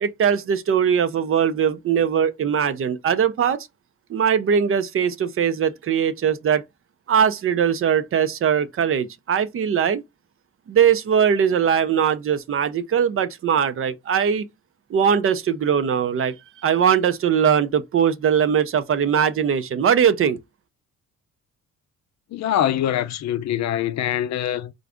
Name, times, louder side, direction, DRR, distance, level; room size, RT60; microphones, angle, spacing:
voice 1, 0.0-3.7 4.1-6.6 7.1-10.0 10.7-14.5 14.9-20.4, right 8 dB, 45° right, 0.5 m, -20 dB
voice 2, 22.3-24.7, left 11 dB, 60° left, 0.5 m, -24 dB
4.6 x 2.5 x 3.4 m
cardioid pair, 90°, 30 cm